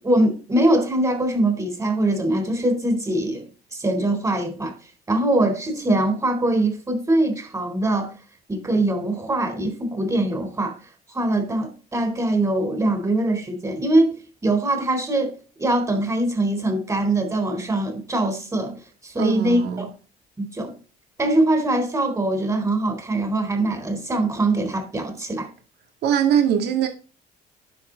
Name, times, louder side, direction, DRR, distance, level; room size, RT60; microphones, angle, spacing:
voice 1, 0.0-3.4 3.7-4.7 5.1-8.1 8.5-10.7 11.1-14.1 14.4-15.3 15.6-19.9 20.4-20.7 21.2-25.5, right 1 dB, 20° right, 4.0 m, -22 dB
voice 2, 19.2-19.9 26.0-26.9, right 9 dB, 75° right, 2.2 m, -21 dB
10.0 x 7.5 x 4.0 m
cardioid pair, 110°, 17 cm